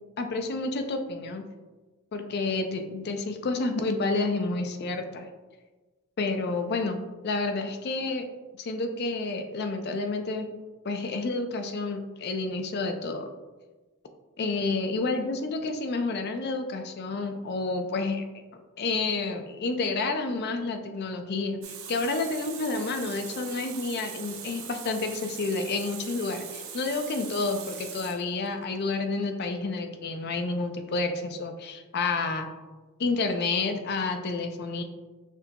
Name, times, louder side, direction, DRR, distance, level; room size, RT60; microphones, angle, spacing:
voice 1, 0.2-1.4 2.1-5.3 6.2-7.0 7.2-8.3 8.6-10.5 10.8-13.3 14.4-18.3 18.8-32.5 33.0-34.8, left 3 dB, 50° left, 6 dB, 0.4 m, -29 dB
Water tap faucet, 21.6-28.6, right 7 dB, 85° right, 0.6 m, -41 dB
5.9 x 2.8 x 2.2 m, 1.2 s
head